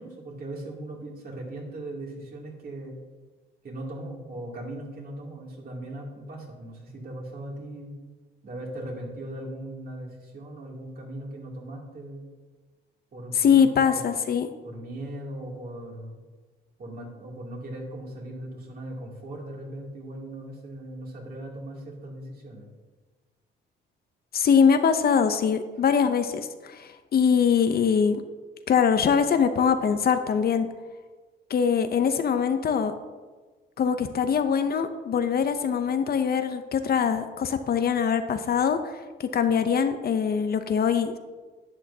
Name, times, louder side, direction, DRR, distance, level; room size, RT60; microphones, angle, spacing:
voice 1, 0.0-3.0 3.6-8.0 8.4-12.3 13.1-14.1 14.6-16.2 16.8-22.7, right 1 dB, 50° right, -2 dB, 2.6 m, -39 dB
voice 2, 13.3-14.5 24.3-28.2 28.7-30.7 31.5-32.9 33.8-41.2, left 7 dB, 50° left, 9 dB, 0.6 m, -23 dB
11.0 x 8.1 x 2.8 m, 1.3 s
cardioid pair, 90°, 20 cm